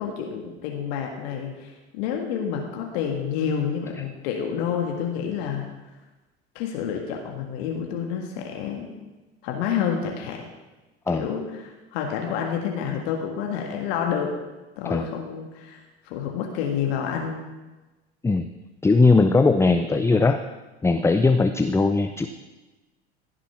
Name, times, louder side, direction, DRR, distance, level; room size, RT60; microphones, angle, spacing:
voice 1, 0.0-5.7 6.5-8.9 9.4-10.4 11.1-14.3 14.8-17.5 20.1-20.2, left 7 dB, 65° left, 2 dB, 1.7 m, -29 dB
voice 2, 18.8-20.4 20.8-22.3, left 3 dB, 10° left, 9 dB, 0.5 m, -19 dB
15.5 x 6.2 x 5.8 m, 1.1 s
hypercardioid pair, 75°, 33 cm